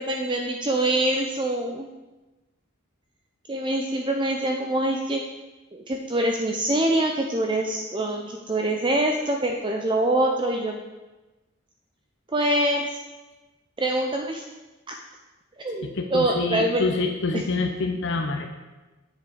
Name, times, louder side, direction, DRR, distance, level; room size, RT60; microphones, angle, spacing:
voice 1, 0.0-1.9 3.5-5.2 5.7-10.8 12.3-13.0 13.8-14.5 14.9-15.0 15.6-16.8 17.3-17.4, right 1 dB, 25° right, 2 dB, 0.6 m, -25 dB
voice 2, 15.8-18.5, left 3 dB, 60° left, 3 dB, 0.8 m, -26 dB
9.5 x 7.5 x 5.0 m, 1.1 s
head